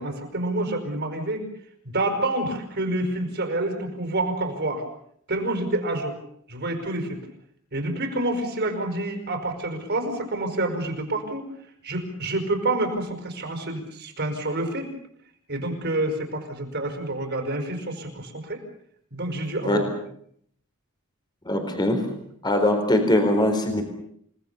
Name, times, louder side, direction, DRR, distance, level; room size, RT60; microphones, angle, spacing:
voice 1, 0.0-1.5 1.8-4.8 5.3-6.2 6.5-7.2 7.7-11.5 11.8-14.9 15.5-18.6 19.1-19.8, right 2 dB, 50° right, 4 dB, 5.4 m, -28 dB
voice 2, 21.4-22.1 22.4-23.8, left 1 dB, 20° left, 5 dB, 4.2 m, -21 dB
29.0 x 19.5 x 7.0 m, 0.67 s
head